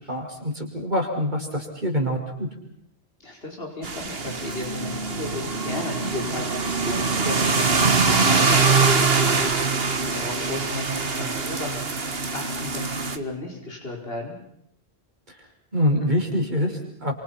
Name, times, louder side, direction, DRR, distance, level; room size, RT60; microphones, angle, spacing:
voice 1, 0.1-2.5 15.3-15.4 15.7-17.1, equal, 45° right, 1 dB, 5.7 m, -25 dB
voice 2, 3.2-12.0 12.3-14.4, left 2 dB, 65° left, 0 dB, 5.3 m, -35 dB
sound 1, 3.8-13.2, right 4 dB, 70° right, 1.9 m, -23 dB
30.0 x 27.0 x 6.0 m, 0.73 s
omnidirectional pair, 1.1 m